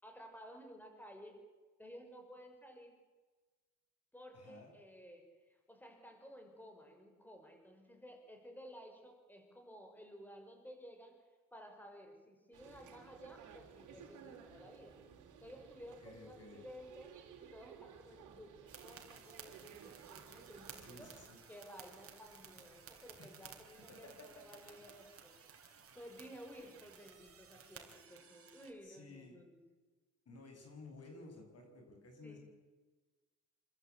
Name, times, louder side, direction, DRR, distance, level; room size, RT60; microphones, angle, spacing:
voice 1, 0.0-1.4 1.8-3.0 4.1-11.2 11.5-15.0 15.4-21.2 21.5-25.4 25.9-29.6 32.2-32.4, equal, 5° left, 4 dB, 5.9 m, -55 dB
voice 2, 4.3-4.7 16.0-16.7 20.8-21.4 23.2-23.3 23.9-24.5 28.8-29.4 30.3-32.4, left 3 dB, 55° left, 4 dB, 7.1 m, -54 dB
sound 1, 12.5-21.3, right 8 dB, 85° right, 4.2 m, -57 dB
sound 2, 18.7-28.7, right 6 dB, 50° right, 4.2 m, -57 dB
28.0 x 13.5 x 8.5 m, 1.3 s
cardioid pair, 90°, 30 cm